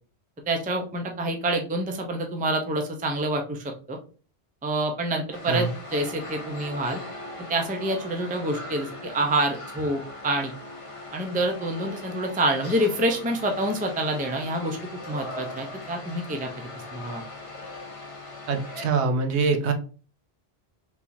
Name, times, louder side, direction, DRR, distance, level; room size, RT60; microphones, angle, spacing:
voice 1, 0.5-4.0 4.6-7.0 7.5-10.5 11.1-17.2, right 1 dB, 10° right, 3 dB, 0.4 m, -27 dB
sound 1, 5.3-18.9, left 2 dB, 35° left, 0.7 m, -40 dB
voice 2, 18.5-19.7, right 4 dB, 75° right, 5 dB, 1.0 m, -24 dB
3.7 x 2.9 x 2.6 m, 0.37 s
omnidirectional pair, 1.1 m